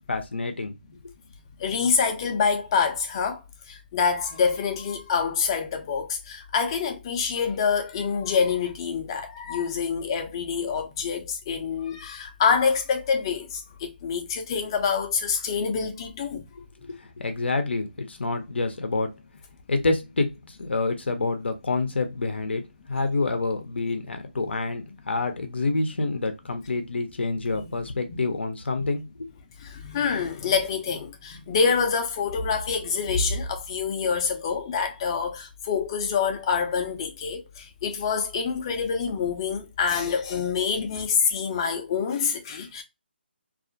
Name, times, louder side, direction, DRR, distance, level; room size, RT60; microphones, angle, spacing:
voice 1, 0.1-0.7 16.5-19.1 19.7-22.6 22.9-29.3, left 3 dB, 80° left, 0.5 m, -27 dB
voice 2, 1.6-3.4 3.7-16.4 27.5-27.6 28.1-28.2 28.8-28.9 29.6-42.8, left 6 dB, 25° left, 0.4 m, -26 dB
2.3 x 2.1 x 2.5 m
hypercardioid pair, 160°, 6 cm